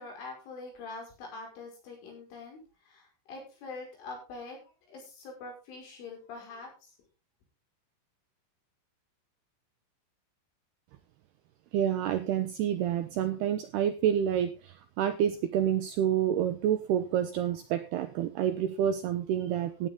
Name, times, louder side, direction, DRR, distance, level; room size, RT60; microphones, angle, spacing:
voice 1, 0.0-2.6 2.9-4.6 4.9-6.7, left 3 dB, 75° left, 1 dB, 7.8 m, -44 dB
voice 2, 11.7-19.9, right 10 dB, 80° right, 9 dB, 2.4 m, -28 dB
15.5 x 10.0 x 3.8 m, 0.30 s
omnidirectional pair, 5.7 m